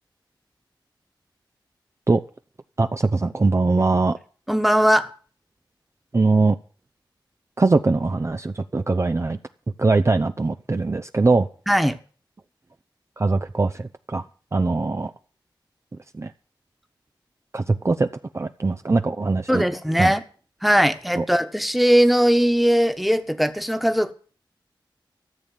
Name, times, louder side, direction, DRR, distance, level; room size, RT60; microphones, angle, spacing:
voice 1, 2.8-4.2 6.1-6.6 7.6-9.4 9.8-11.5 13.2-14.3 14.5-15.1 16.1-16.3 17.5-18.1 18.3-19.6 20.0-20.1 21.2-21.3, right 3 dB, 35° right, 0.6 m, -21 dB
voice 2, 4.5-5.1 11.7-12.0 19.5-20.2 20.6-24.1, equal, ahead, 1.4 m, -19 dB
14.0 x 7.1 x 9.1 m
wide cardioid pair, 60°, 8 cm